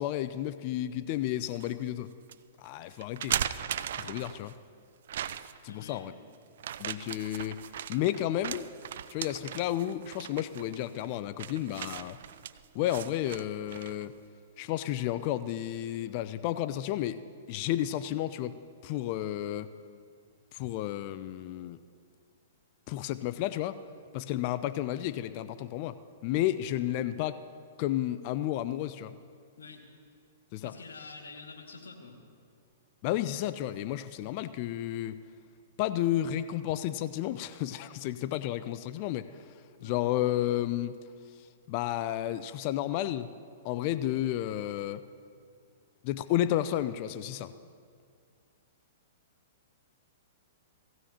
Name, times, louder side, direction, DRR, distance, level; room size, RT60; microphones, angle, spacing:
voice 1, 0.0-2.1 2.6-3.4 4.0-4.5 5.6-6.1 6.8-7.6 7.9-8.7 9.1-12.2 12.7-14.1 14.6-18.6 18.8-19.7 20.5-21.8 22.9-23.8 24.1-27.4 27.8-29.1 30.5-30.7 33.0-35.2 35.8-39.3 39.8-41.0 41.7-43.3 43.6-45.0 46.0-47.5, left 13 dB, 45° left, 14 dB, 0.4 m, -32 dB
sound 1, 1.1-1.7 2.3-2.4 3.0-4.5 5.1-5.7 6.6-14.1, right 10 dB, 65° right, 0.4 m, -38 dB
voice 2, 5.7-6.2 29.6-29.8 30.6-32.2 39.8-40.0, left 4 dB, 85° left, 1 dB, 2.0 m, -47 dB
18.0 x 15.5 x 2.9 m, 2.2 s
hypercardioid pair, 120°, 0 cm